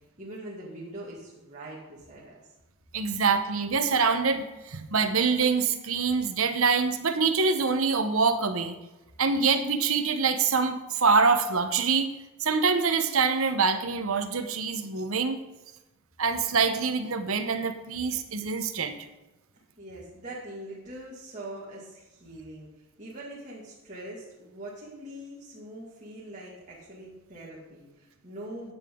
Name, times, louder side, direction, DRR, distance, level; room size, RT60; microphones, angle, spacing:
voice 1, 0.2-2.4 19.8-22.7 23.0-28.7, right 1 dB, 35° right, -7 dB, 2.2 m, -42 dB
voice 2, 2.9-8.8 9.2-12.1 12.4-15.4 16.2-19.0, right 5 dB, 70° right, 9 dB, 1.0 m, -25 dB
14.5 x 8.9 x 3.8 m, 1.1 s
head